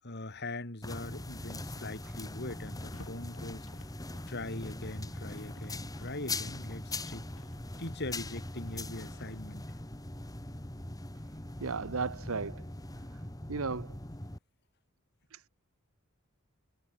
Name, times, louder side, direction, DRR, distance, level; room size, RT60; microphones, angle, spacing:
voice 1, 0.0-3.7 4.3-7.3 7.8-9.7, left 2 dB, 55° left, 3.4 m, -41 dB
sound 1, 0.8-14.4, left 2 dB, 15° left, 2.1 m, -41 dB
sound 2, 1.4-9.4, left 1 dB, 75° left, 6.2 m, -57 dB
voice 2, 11.6-12.6 13.5-13.9 15.3-15.5, right 4 dB, 80° right, 1.0 m, -35 dB
head